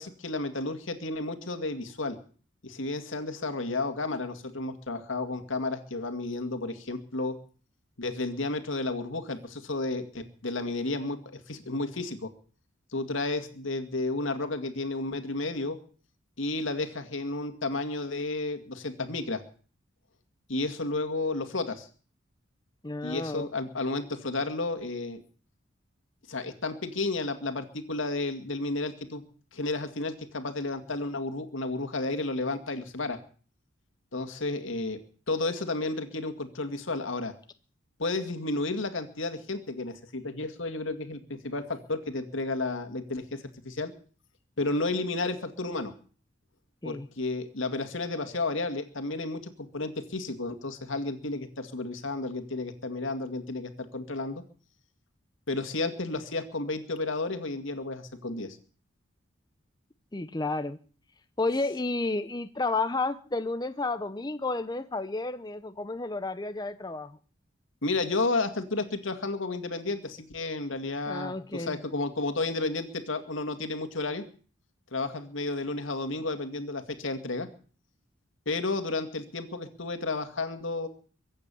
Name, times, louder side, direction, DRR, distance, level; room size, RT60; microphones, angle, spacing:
voice 1, 0.0-2.2 2.6-7.4 8.0-12.3 12.9-15.8 16.4-19.4 20.5-21.9 23.0-25.2 26.3-29.2 29.5-33.2 34.1-35.0 35.3-37.3 38.0-43.9 44.6-45.9 46.8-54.4 55.5-58.6 67.8-74.2 74.9-77.5 78.5-80.9, left 2 dB, 85° left, 8 dB, 2.2 m, -32 dB
voice 2, 22.8-23.5 46.8-47.1 60.1-60.8 61.4-67.2 71.1-71.8, left 3 dB, 20° left, 10 dB, 0.7 m, -31 dB
23.0 x 8.9 x 7.0 m, 0.42 s
head